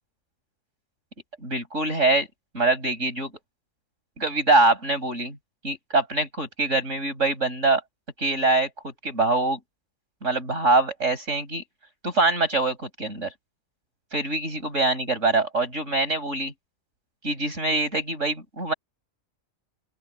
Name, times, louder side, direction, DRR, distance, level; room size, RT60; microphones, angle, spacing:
voice 1, 1.4-2.3 2.5-3.3 4.2-5.4 5.6-7.8 8.2-9.6 10.2-11.6 12.0-13.3 14.1-16.5 17.2-18.7, right 2 dB, 60° right, 7.2 m, -24 dB
open air
omnidirectional pair, 1.4 m